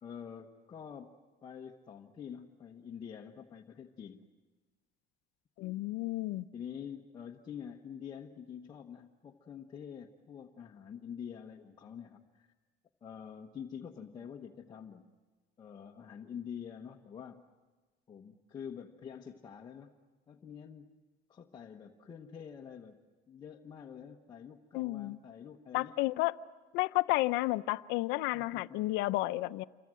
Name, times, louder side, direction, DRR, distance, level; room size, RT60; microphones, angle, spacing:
voice 1, 0.0-1.2 1.4-4.3 6.5-12.5 13.0-15.1 15.6-17.4 18.1-20.0 20.3-21.0 21.3-23.0 23.3-26.0 28.3-29.0, left 8 dB, 25° left, 1.2 m, -47 dB
voice 2, 5.6-6.5 24.7-25.2 25.7-26.3 26.7-29.6, left 19 dB, 70° left, 0.7 m, -31 dB
28.0 x 24.5 x 7.7 m
cardioid pair, 155°, 19 cm